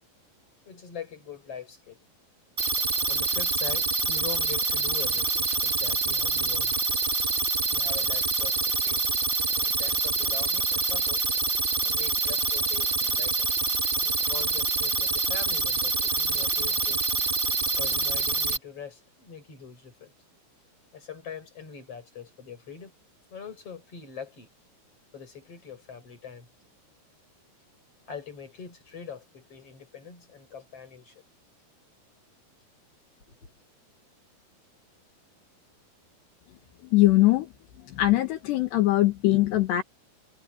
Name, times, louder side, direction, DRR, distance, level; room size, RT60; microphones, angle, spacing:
voice 1, 0.7-2.0 3.1-6.7 7.6-9.2 9.6-11.2 11.8-13.5 14.0-17.1 17.8-20.1 20.9-22.9 23.3-24.5 25.1-26.5 28.1-31.2 33.3-33.5, left 7 dB, 30° left, 7.1 m, -42 dB
sound 1, 2.6-18.6, right 3 dB, 70° right, 0.5 m, -26 dB
voice 2, 36.9-37.5 37.9-39.8, left 16 dB, 75° left, 3.8 m, -21 dB
omnidirectional pair, 5.1 m